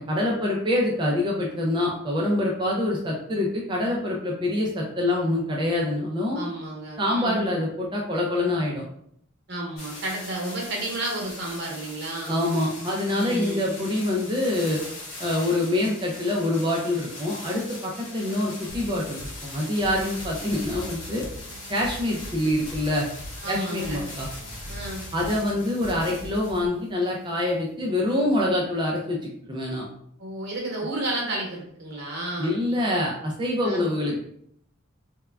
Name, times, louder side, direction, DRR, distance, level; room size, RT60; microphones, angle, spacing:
voice 1, 0.0-6.4 7.0-8.8 12.3-14.8 15.2-21.2 21.7-23.1 23.5-24.3 25.1-29.8 32.4-34.2, left 1 dB, 25° right, -2 dB, 0.4 m, -25 dB
voice 2, 6.3-7.5 9.5-12.4 13.1-13.8 23.4-24.1 24.7-25.1 30.2-32.5 33.6-33.8, right 1 dB, 55° right, -2 dB, 0.9 m, -32 dB
sound 1, 9.8-26.6 27.5-27.6, left 2 dB, 90° left, 1.1 m, -41 dB
sound 2, 18.7-26.7, equal, 80° right, 0.8 m, -41 dB
3.5 x 2.1 x 2.2 m, 0.68 s
head